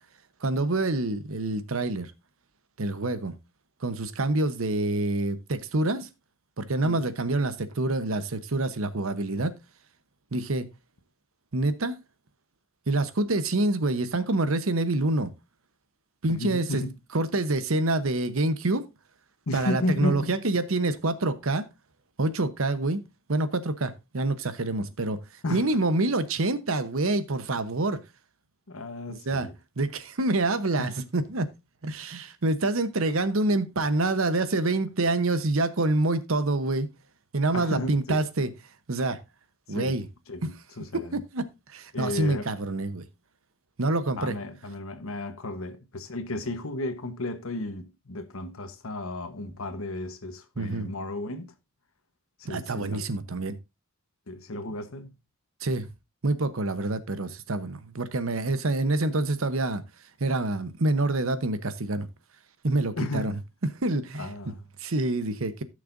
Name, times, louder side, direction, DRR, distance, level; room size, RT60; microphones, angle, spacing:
voice 1, 0.4-2.1 2.8-3.3 3.8-6.1 6.6-9.5 10.3-10.7 11.5-12.0 12.9-15.3 16.2-16.9 17.1-18.8 19.5-21.6 22.2-23.0 23.3-25.2 25.5-28.0 29.1-29.5 29.8-31.5 31.8-36.9 37.3-38.5 38.9-39.2 39.7-40.1 40.9-43.0 43.8-44.4 50.6-50.9 52.4-53.6 55.6-55.9 56.2-59.8 60.2-62.1 62.6-63.4 63.8-64.3 64.8-65.6, right 2 dB, 75° right, 1.0 m, -26 dB
voice 2, 16.3-16.9 19.5-20.4 25.4-25.6 28.7-29.5 30.8-30.9 37.5-38.2 39.7-40.0 40.3-41.2 41.9-42.5 44.2-51.5 52.4-53.1 54.3-55.1 63.0-63.4 64.2-64.6, left 2 dB, 75° left, 1.2 m, -33 dB
15.5 x 6.5 x 2.6 m
head